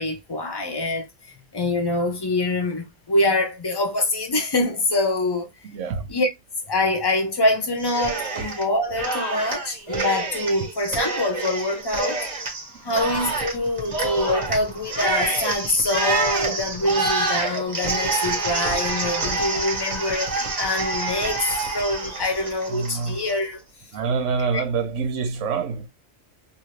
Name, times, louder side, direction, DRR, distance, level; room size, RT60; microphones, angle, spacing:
voice 1, 0.0-5.5 6.1-6.3 6.7-12.2 12.8-21.4 21.7-23.6, left 2 dB, 35° left, 0.4 m, -25 dB
voice 2, 5.6-6.1 8.4-8.5 12.9-13.0 22.7-23.2 23.9-25.9, right 5 dB, 70° right, 0.9 m, -26 dB
Cheering, 7.8-8.7 9.0-23.3, right 3 dB, 35° right, 1.0 m, -27 dB
2.7 x 2.6 x 3.1 m
omnidirectional pair, 1.3 m